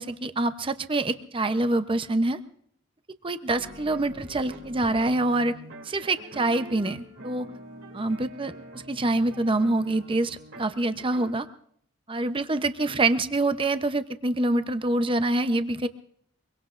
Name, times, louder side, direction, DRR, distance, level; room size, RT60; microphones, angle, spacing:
voice 1, 0.0-2.4 3.2-5.5 5.8-7.5 7.9-11.5 12.1-15.9, right 2 dB, 25° right, 10 dB, 0.7 m, -26 dB
sound 1, 3.5-11.3, right 1 dB, 75° right, 2.9 m, -45 dB
24.0 x 23.5 x 2.5 m, 0.65 s
head